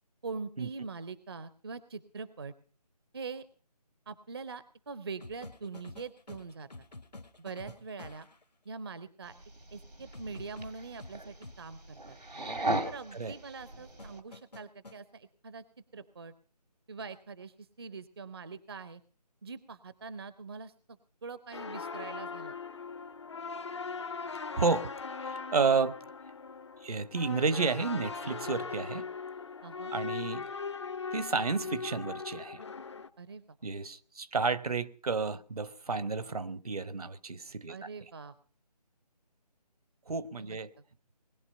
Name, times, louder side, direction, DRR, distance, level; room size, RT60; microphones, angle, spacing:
voice 1, 0.2-2.5 3.1-3.5 4.1-6.7 7.4-8.3 8.7-9.3 9.7-12.2 12.8-15.6 15.9-16.3 16.9-19.0 19.4-22.5 29.6-29.9 33.2-33.6 37.7-38.3 40.4-40.6, right 4 dB, 35° right, 0.6 m, -43 dB
sound 1, 5.2-8.4 10.1-11.6 14.0-15.0 17.0-17.2, left 2 dB, 75° left, 1.5 m, -49 dB
sound 2, 9.2-14.2, right 2 dB, 90° right, 2.3 m, -38 dB
voice 2, 12.8-13.3 24.5-24.9 25.2-26.0 26.8-29.1 29.9-30.4 31.1-32.6 33.6-37.9 40.1-40.7, right 4 dB, 60° right, 0.9 m, -31 dB
sound 3, 21.5-33.1, left 5 dB, 45° left, 0.6 m, -40 dB
20.5 x 11.0 x 5.3 m
figure-of-eight pair, 155°, 21 cm